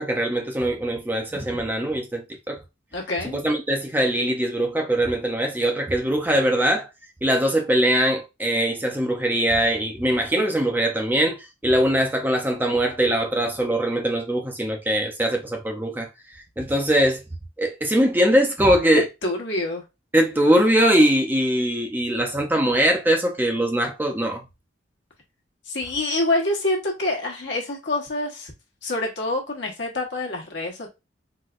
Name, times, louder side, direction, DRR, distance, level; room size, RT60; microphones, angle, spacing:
voice 1, 0.0-2.6 3.2-6.9 7.2-16.1 16.6-17.2 17.6-19.1 20.1-24.4, right 1 dB, 10° right, 0.4 m, -22 dB
voice 2, 2.9-3.4 19.2-19.8 25.7-28.5 28.8-30.9, left 2 dB, 70° left, 1.1 m, -26 dB
4.0 x 2.1 x 2.4 m
head